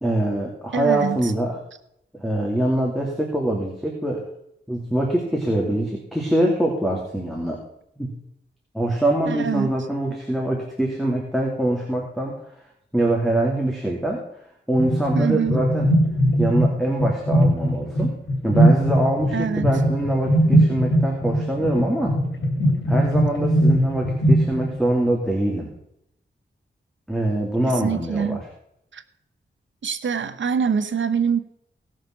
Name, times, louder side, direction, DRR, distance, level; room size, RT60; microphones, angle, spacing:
voice 1, 0.0-1.6 2.1-4.3 4.7-7.6 8.0-8.1 8.7-12.4 12.9-14.2 14.7-15.9 16.4-18.2 18.4-22.2 22.9-25.7 27.1-28.4, right 1 dB, ahead, -1 dB, 2.9 m, -24 dB
voice 2, 0.7-1.3 9.3-9.7 15.1-15.6 19.3-19.7 27.6-28.4 28.9-29.0 29.8-31.4, right 6 dB, 80° right, 11 dB, 1.0 m, -24 dB
sound 1, 14.7-24.9, equal, 85° left, 3.2 m, -20 dB
18.0 x 6.6 x 6.1 m, 0.74 s
wide cardioid pair, 95°, 19 cm